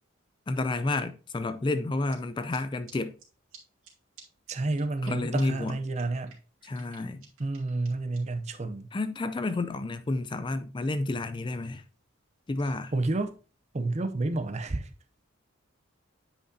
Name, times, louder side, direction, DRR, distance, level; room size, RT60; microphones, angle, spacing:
voice 1, 0.5-3.1 5.0-5.8 6.6-7.2 8.9-11.8 12.5-12.9, left 2 dB, 25° left, 0.3 m, -30 dB
sound 1, 2.1-2.2 2.5-2.6 2.9-3.0 3.2-3.3 3.5-3.6 3.8-3.9 4.2-4.3 4.5-5.1 5.4-5.5 5.7-5.8 6.0-8.2, right 8 dB, 90° right, 2.3 m, -51 dB
voice 2, 4.5-6.4 7.4-8.9 12.9-13.4 13.7-14.9, right 2 dB, 35° right, 0.5 m, -30 dB
9.0 x 5.1 x 2.7 m
head